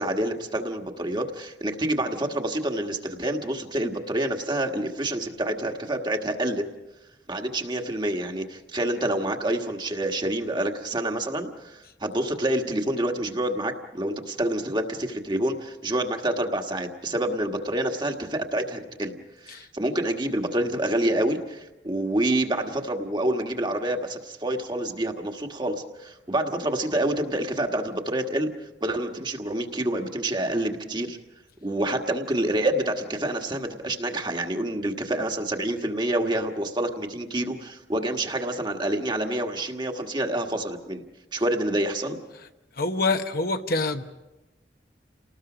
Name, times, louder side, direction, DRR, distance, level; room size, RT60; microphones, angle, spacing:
voice 1, 0.0-6.7 7.3-19.2 19.4-28.5 28.8-31.2 31.6-41.0 41.3-42.2, right 1 dB, 25° right, 3 dB, 1.5 m, -27 dB
voice 2, 42.8-44.0, left 3 dB, 55° left, 7 dB, 1.1 m, -25 dB
29.0 x 19.5 x 5.0 m, 1.0 s
head